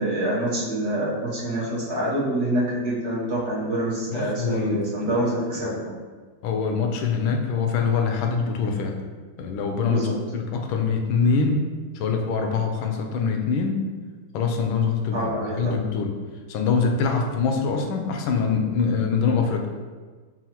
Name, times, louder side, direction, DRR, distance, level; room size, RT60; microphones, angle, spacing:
voice 1, 0.0-6.0 9.9-10.1 15.1-15.7, right 1 dB, 60° right, -8 dB, 0.7 m, -26 dB
voice 2, 4.1-5.1 6.4-9.0 9.4-10.0 10.3-11.6 11.9-13.8 14.3-16.2 16.5-19.7, left 5 dB, 80° left, 3 dB, 1.3 m, -24 dB
5.7 x 2.3 x 2.8 m, 1.4 s
omnidirectional pair, 2.3 m